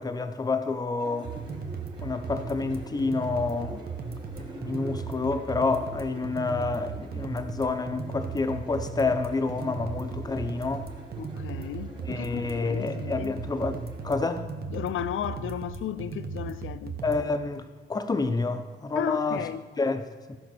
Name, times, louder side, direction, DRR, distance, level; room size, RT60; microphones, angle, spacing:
voice 1, 0.0-1.3 2.0-3.9 4.4-10.9 12.1-14.5 17.0-19.5 19.8-20.0 20.3-20.4, left 3 dB, 20° left, 0.6 m, -29 dB
sound 1, 1.0-14.3, right 2 dB, 20° right, 1.4 m, -46 dB
sound 2, 1.2-17.2, right 5 dB, 50° right, 1.0 m, -37 dB
voice 2, 11.2-13.4 14.7-17.0 18.9-19.7, left 10 dB, 75° left, 0.5 m, -34 dB
14.5 x 5.1 x 6.1 m
wide cardioid pair, 160°, 21 cm